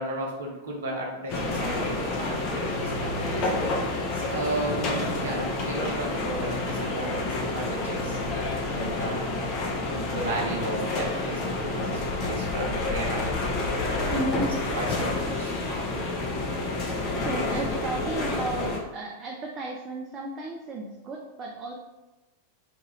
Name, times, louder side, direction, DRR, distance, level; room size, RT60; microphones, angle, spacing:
voice 1, 0.0-3.7 4.1-8.2 8.7-9.4 9.8-13.3 13.9-14.2 14.7-16.2, right 1 dB, 60° right, -1 dB, 0.7 m, -34 dB
sound 1, 1.3-18.8, left 2 dB, 40° left, 0.5 m, -29 dB
voice 2, 14.1-14.6 17.1-21.7, right 2 dB, 25° right, -1 dB, 0.4 m, -33 dB
2.9 x 2.3 x 3.0 m, 1.0 s
figure-of-eight pair, 90°, 0 cm